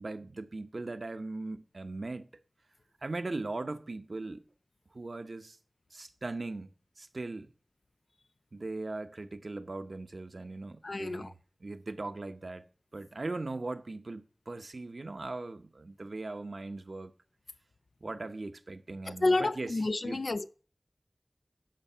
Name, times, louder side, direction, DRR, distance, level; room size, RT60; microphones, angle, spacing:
voice 1, 0.0-2.3 3.0-4.4 4.9-5.6 5.9-7.5 8.5-12.6 12.9-17.1 18.0-20.2, right 2 dB, 75° right, 0.8 m, -39 dB
voice 2, 10.8-11.3 19.2-20.5, left 2 dB, 80° left, 0.5 m, -29 dB
12.0 x 5.2 x 6.7 m
wide cardioid pair, 50°, 0 cm